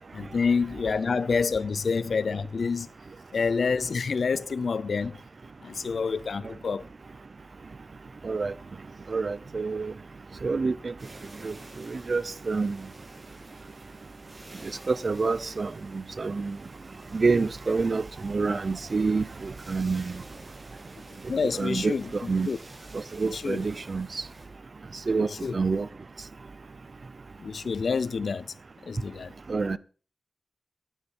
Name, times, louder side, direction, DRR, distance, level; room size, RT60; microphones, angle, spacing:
voice 1, 0.1-2.9 3.3-5.2 5.6-6.9 21.3-22.6 23.3-23.6 25.2-25.5 27.4-28.5 28.8-29.3, left 5 dB, 85° left, 0.5 m, -28 dB
voice 2, 9.1-9.9 10.4-10.9 11.4-11.5 11.9-12.8 14.9-16.6 17.1-20.2 21.6-21.9 22.3-22.5 23.2-24.1 25.1-25.3 25.5-25.9 29.5-29.8, right 4 dB, 65° right, 0.6 m, -27 dB
sound 1, 11.0-24.5, right 2 dB, 50° right, 4.6 m, -50 dB
11.0 x 9.8 x 5.4 m
cardioid pair, 40°, 0 cm